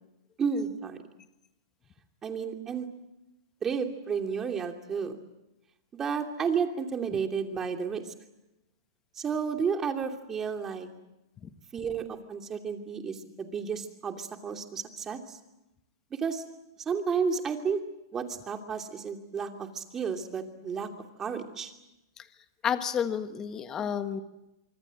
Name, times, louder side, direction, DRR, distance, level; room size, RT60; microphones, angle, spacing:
voice 1, 0.4-1.0 2.2-2.9 3.6-5.2 5.9-8.1 9.1-10.9 11.7-15.4 16.1-16.4 16.8-17.8 18.1-20.9 21.2-21.7, right 6 dB, 20° right, 4 dB, 2.9 m, -32 dB
voice 2, 22.6-24.2, left 8 dB, 25° left, 10 dB, 1.4 m, -30 dB
25.5 x 24.5 x 7.8 m, 0.93 s
hypercardioid pair, 140°, 2 cm